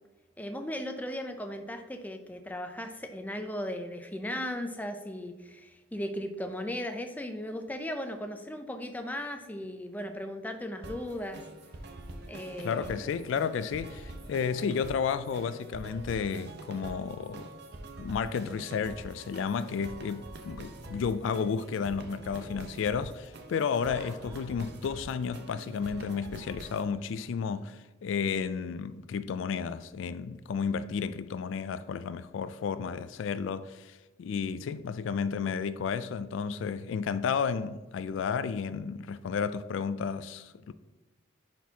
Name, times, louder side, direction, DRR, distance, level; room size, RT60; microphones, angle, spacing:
voice 1, 0.4-11.4 12.3-12.9, left 1 dB, 10° left, 0.4 m, -37 dB
sound 1, 10.8-26.8, right 2 dB, 55° right, 0.7 m, -45 dB
sound 2, 11.0-22.0, right 1 dB, 85° right, 1.6 m, -59 dB
voice 2, 12.6-17.5 18.0-40.7, left 6 dB, 70° left, 0.3 m, -32 dB
Laughter, 23.7-27.6, right 1 dB, 15° right, 0.9 m, -55 dB
10.0 x 4.3 x 2.8 m
head